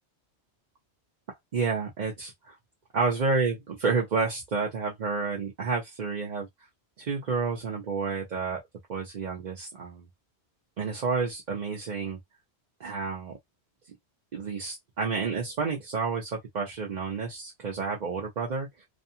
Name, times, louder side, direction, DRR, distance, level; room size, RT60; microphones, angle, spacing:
voice 1, 1.5-2.6 2.9-6.5 7.0-8.6 8.9-10.0 10.8-12.2 12.8-13.4 14.3-18.9, right 4 dB, 45° right, 0.7 m, -30 dB
2.6 x 2.3 x 2.7 m
omnidirectional pair, 1.1 m